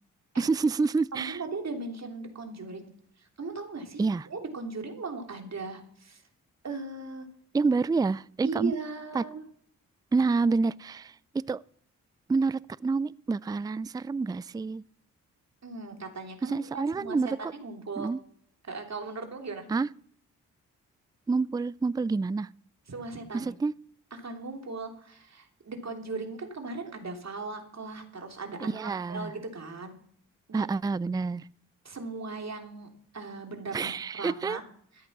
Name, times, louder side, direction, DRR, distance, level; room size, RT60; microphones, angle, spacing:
voice 1, 0.4-1.4 4.0-4.3 7.5-8.7 9.1-9.2 10.1-11.6 12.3-14.8 16.4-17.5 18.0-18.2 19.7-19.9 21.3-22.5 23.3-23.7 28.6-29.3 30.5-31.5 33.7-34.6, right 4 dB, 10° right, 0.4 m, -28 dB
voice 2, 1.1-2.9 3.2-6.2 6.6-7.3 8.4-9.4 15.6-18.1 18.7-19.7 22.9-23.5 24.1-30.0 30.5-30.7 31.8-32.9 33.1-33.9 34.2-34.6, right 3 dB, 45° right, 3.1 m, -38 dB
13.5 x 8.3 x 6.0 m
supercardioid pair, 45°, 36 cm